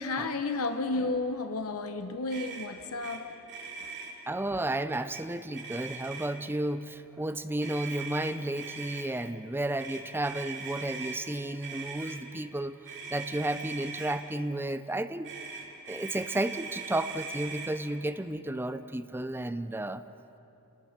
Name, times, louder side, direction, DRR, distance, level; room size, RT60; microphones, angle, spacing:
voice 1, 0.0-3.3, left 3 dB, 70° left, 7 dB, 1.0 m, -32 dB
Motor vehicle (road), 2.3-2.7 3.0-3.2 3.5-4.1 4.9-5.2 5.5-6.5 7.6-9.0 9.8-11.2 11.6-12.2 12.9-14.2 15.2-17.7, right 5 dB, 55° right, 3.3 m, -41 dB
voice 2, 4.3-12.8 13.1-15.3 15.9-20.0, right 1 dB, 10° right, 11 dB, 0.6 m, -32 dB
29.0 x 19.5 x 5.9 m, 2.9 s
head